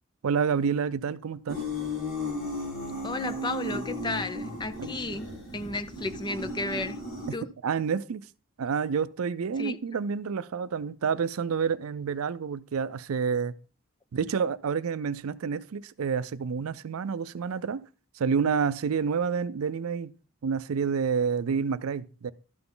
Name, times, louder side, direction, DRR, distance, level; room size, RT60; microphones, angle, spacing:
voice 1, 0.2-1.6 4.8-4.9 7.6-8.2 8.6-13.5 14.1-17.8 18.2-20.1 20.4-22.3, right 6 dB, 85° right, 0.5 m, -28 dB
sound 1, 1.5-7.3, left 1 dB, 70° left, 4.6 m, -35 dB
voice 2, 3.0-7.0 7.3-7.5 9.6-9.8, left 2 dB, 20° left, 0.5 m, -33 dB
12.0 x 5.9 x 3.9 m
head